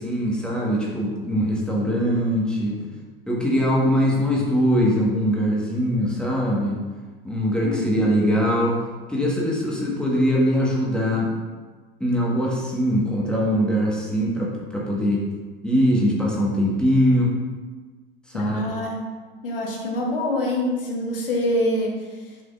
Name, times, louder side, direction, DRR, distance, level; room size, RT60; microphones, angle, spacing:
voice 1, 0.0-2.8 3.3-6.8 7.2-8.8 9.1-11.3 12.0-15.2 15.6-17.3 18.3-18.6, equal, 5° left, -4 dB, 1.6 m, -22 dB
voice 2, 18.3-19.0 19.4-22.0, left 1 dB, 70° left, -1 dB, 1.7 m, -25 dB
8.9 x 5.8 x 2.6 m, 1.4 s
figure-of-eight pair, 85°, 29 cm